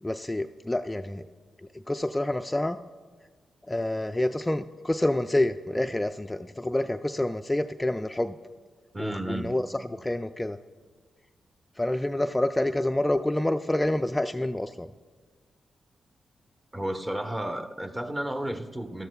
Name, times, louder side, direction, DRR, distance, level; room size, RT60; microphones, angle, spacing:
voice 1, 0.0-1.3 1.7-2.8 3.7-8.4 9.0-10.6 11.8-14.9, left 1 dB, 15° left, 7 dB, 0.3 m, -28 dB
voice 2, 8.9-9.5 16.7-19.1, right 1 dB, 20° right, 6 dB, 1.0 m, -32 dB
17.0 x 13.0 x 2.3 m, 1.6 s
cardioid pair, 55°, 0 cm